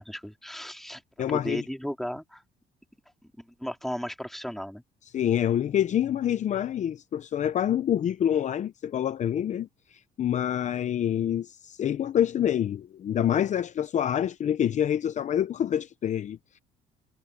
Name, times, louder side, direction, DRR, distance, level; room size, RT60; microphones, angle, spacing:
voice 1, 0.0-1.0 1.3-2.4 3.4-4.8, equal, ahead, 3.3 m, -35 dB
voice 2, 1.2-1.6 5.1-16.6, left 10 dB, 45° left, 0.7 m, -27 dB
cardioid pair, 110°, 17 cm